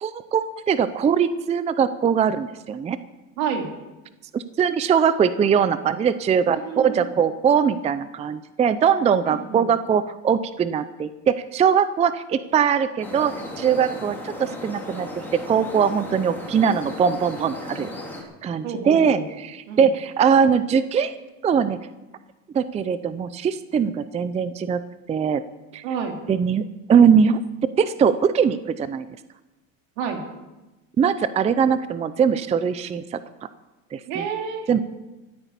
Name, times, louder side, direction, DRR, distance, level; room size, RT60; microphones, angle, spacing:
voice 1, 0.0-3.0 4.3-15.1 15.5-17.9 18.4-21.1 21.4-21.8 22.5-24.8 25.1-25.4 25.7-25.8 26.3-26.6 26.9-27.4 27.8-29.1 31.0-33.2 33.9-34.2 34.7-34.8, right 7 dB, 20° right, 14 dB, 0.5 m, -21 dB
voice 2, 3.4-3.7 6.5-7.1 9.2-9.7 18.6-19.2 19.7-19.9 25.8-26.2 30.0-30.2 34.1-34.7, right 6 dB, 75° right, 3 dB, 2.9 m, -29 dB
sound 1, 13.0-18.2, left 1 dB, 5° left, 2.9 m, -35 dB
14.0 x 9.1 x 8.3 m, 1.1 s
supercardioid pair, 130°, 38 cm